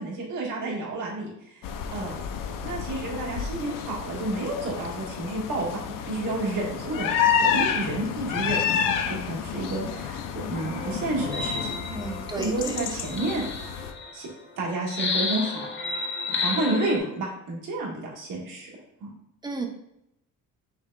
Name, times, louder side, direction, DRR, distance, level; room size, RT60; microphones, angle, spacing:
voice 1, 0.0-2.2 2.6-5.7 6.1-11.8 12.3-13.4 14.1-14.3 14.6-15.7 16.4-18.7 19.0-19.1, right 2 dB, 70° right, -4 dB, 1.6 m, -30 dB
sound 1, 1.6-13.9, left 7 dB, 75° left, 0.5 m, -30 dB
sound 2, 10.5-14.3 14.9-17.0, left 4 dB, 35° left, 0.7 m, -32 dB
voice 2, 11.9-12.8 19.4-19.7, right 3 dB, 15° right, 2 dB, 0.7 m, -33 dB
5.9 x 3.6 x 2.3 m, 0.81 s
cardioid pair, 130°, 33 cm